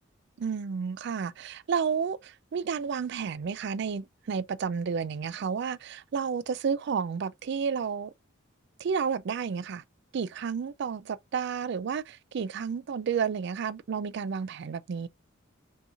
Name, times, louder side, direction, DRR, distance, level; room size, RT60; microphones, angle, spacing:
voice 1, 0.4-8.1 8.8-9.8 10.1-15.1, right 6 dB, 60° right, 0.4 m, -31 dB
5.4 x 2.9 x 2.3 m
head